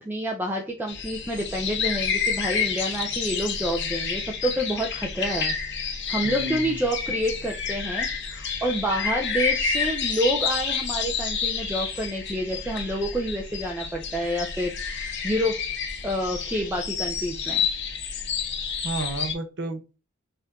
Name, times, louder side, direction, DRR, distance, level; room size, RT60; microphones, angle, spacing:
voice 1, 0.0-5.6 6.1-15.6 16.0-17.6, equal, 10° right, 0 dB, 0.4 m, -28 dB
sound 1, 0.9-19.3, left 6 dB, 55° left, 0.9 m, -29 dB
voice 2, 6.2-6.7 18.8-20.0, right 2 dB, 55° right, 8 dB, 0.7 m, -32 dB
4.4 x 2.5 x 3.5 m, 0.32 s
head